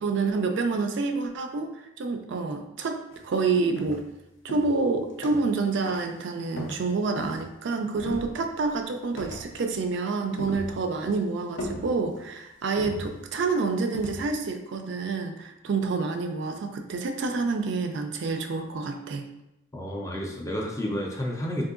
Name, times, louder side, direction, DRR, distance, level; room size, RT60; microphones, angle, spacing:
voice 1, 0.0-1.7 2.0-4.0 4.4-19.2, right 4 dB, 60° right, 5 dB, 0.3 m, -28 dB
sound 1, 3.1-3.3 3.8-4.2 4.5-5.6 5.9-6.2 6.6-7.6 7.9-8.7 9.2-9.8 10.1-11.1 11.6-12.3 12.8-13.5 13.9-14.3, left 1 dB, 65° left, 0.6 m, -39 dB
voice 2, 19.7-21.6, equal, 15° left, 0 dB, 0.4 m, -31 dB
3.6 x 2.6 x 2.4 m, 0.90 s
head